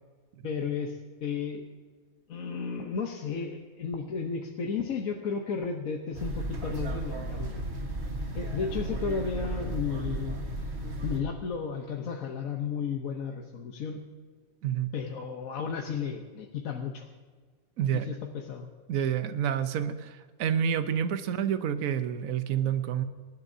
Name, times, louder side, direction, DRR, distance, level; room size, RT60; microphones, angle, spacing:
voice 1, 0.4-1.6 2.3-7.6 8.3-10.4 11.0-14.0 14.9-17.1 17.9-18.7, left 6 dB, 70° left, 2 dB, 1.4 m, -33 dB
sound 1, 6.1-11.2, right 2 dB, 50° right, 1.8 m, -34 dB
voice 2, 17.8-18.1 18.9-23.0, right 9 dB, 75° right, 10 dB, 1.2 m, -28 dB
25.5 x 12.0 x 2.7 m, 1.5 s
omnidirectional pair, 1.5 m